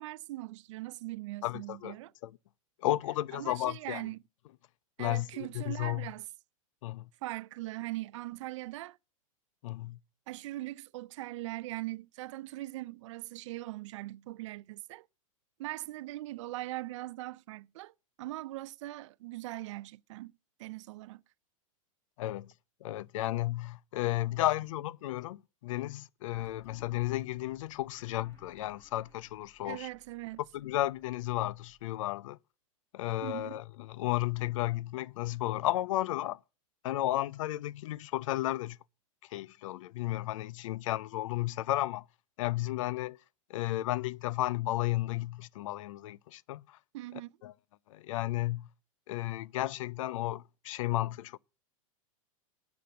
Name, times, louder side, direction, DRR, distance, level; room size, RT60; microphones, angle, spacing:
voice 1, 0.0-2.1 3.3-4.2 5.0-6.3 7.2-9.0 10.3-15.0 15.6-17.9 18.2-20.3 20.6-21.2 29.6-30.4 33.2-33.6 46.9-47.3, right 17 dB, 60° right, 0.5 m, -40 dB
voice 2, 1.4-2.0 2.2-2.3 2.8-4.0 5.0-6.1 6.8-7.1 9.6-10.0 22.2-22.5 22.8-29.9 30.5-32.4 32.9-36.4 36.8-38.8 39.3-42.0 42.4-43.2 43.5-46.8 47.4-47.5 47.9-48.7 49.1-51.4, left 15 dB, 65° left, 0.5 m, -33 dB
sound 1, 26.3-31.9, left 2 dB, 15° left, 1.9 m, -62 dB
10.0 x 6.1 x 7.7 m
hypercardioid pair, 135°, 18 cm